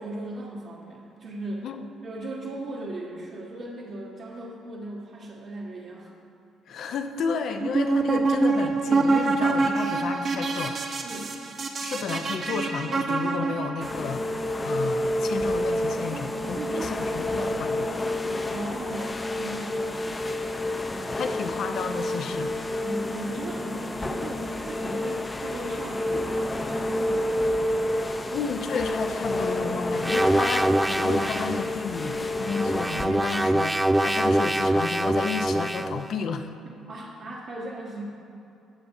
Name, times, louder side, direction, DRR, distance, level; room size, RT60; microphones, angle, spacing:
voice 1, 0.0-1.7 2.0-6.1 11.0-11.3 16.1-17.5 17.9-20.0 22.8-27.6 36.9-38.0, right 2 dB, 65° right, -8 dB, 1.4 m, -37 dB
voice 2, 6.7-10.8 11.8-18.0 21.0-22.5 28.3-36.5, left 5 dB, 60° left, 6 dB, 0.7 m, -32 dB
sound 1, 7.6-13.9, right 3 dB, 50° right, 1.0 m, -25 dB
sound 2, 13.8-33.1, left 1 dB, 25° left, 0.7 m, -29 dB
sound 3, 30.0-31.7 32.4-36.1, right 1 dB, 10° right, 0.3 m, -24 dB
17.0 x 6.9 x 2.7 m, 2.8 s
hypercardioid pair, 50°, 0 cm